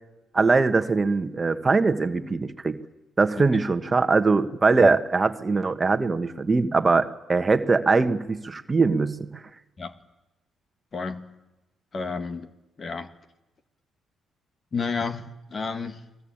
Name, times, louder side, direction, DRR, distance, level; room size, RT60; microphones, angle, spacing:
voice 1, 0.3-2.8 3.2-9.4, right 4 dB, 25° right, 1.5 m, -22 dB
voice 2, 10.9-11.2 11.9-12.5 12.8-13.1 14.7-16.0, left 4 dB, 40° left, 2.0 m, -31 dB
29.0 x 20.0 x 8.9 m
cardioid pair, 90°, 0 cm